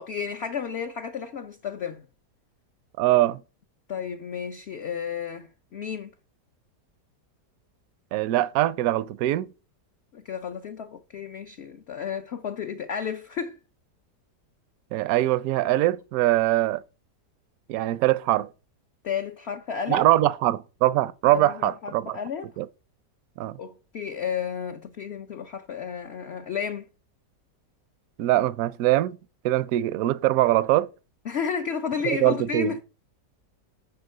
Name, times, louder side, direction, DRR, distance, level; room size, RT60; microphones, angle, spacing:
voice 1, 0.0-2.0 3.9-6.1 10.1-13.6 19.0-20.1 21.3-22.5 23.6-26.9 31.2-32.8, left 7 dB, 60° left, 0.7 m, -32 dB
voice 2, 3.0-3.4 8.1-9.5 14.9-16.8 17.7-18.5 19.9-22.2 22.6-22.7 23.4-23.6 28.2-29.2 29.4-30.9 32.0-32.7, right 15 dB, 70° right, 0.9 m, -22 dB
9.5 x 4.3 x 6.5 m
omnidirectional pair, 1.8 m